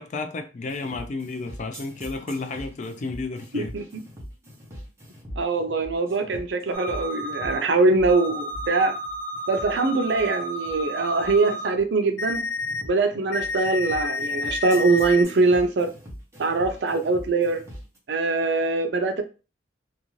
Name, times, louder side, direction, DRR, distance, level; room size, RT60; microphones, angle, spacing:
voice 1, 0.0-3.8, left 3 dB, 40° left, 0.3 m, -32 dB
sound 1, 0.7-18.0, equal, 15° right, 0.8 m, -42 dB
voice 2, 5.4-8.9 9.5-12.5 12.8-15.9 16.4-17.6 18.1-19.2, right 3 dB, 65° right, 0.5 m, -22 dB
sound 2, 6.7-7.6 8.1-11.7 12.2-12.8 13.3-15.2, left 2 dB, 85° left, 0.7 m, -31 dB
2.5 x 2.3 x 3.0 m
head